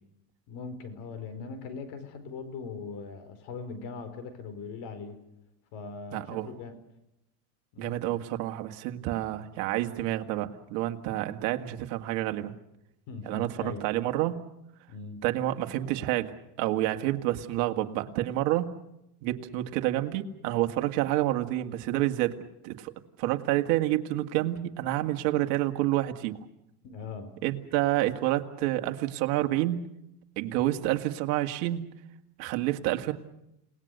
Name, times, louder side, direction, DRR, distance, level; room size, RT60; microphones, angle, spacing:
voice 1, 0.5-5.2 5.7-6.7 7.7-8.0 13.1-13.8 14.9-15.2 26.8-27.3, left 4 dB, 55° left, 10 dB, 4.7 m, -40 dB
voice 2, 6.1-6.5 7.8-12.5 13.3-14.4 15.2-18.8 19.2-22.4 22.6-22.9 23.2-26.4 27.4-29.9 30.4-31.9 32.4-33.1, right 15 dB, 60° right, 6 dB, 2.1 m, -28 dB
29.5 x 19.5 x 6.7 m, 0.84 s
supercardioid pair, 120°, 47 cm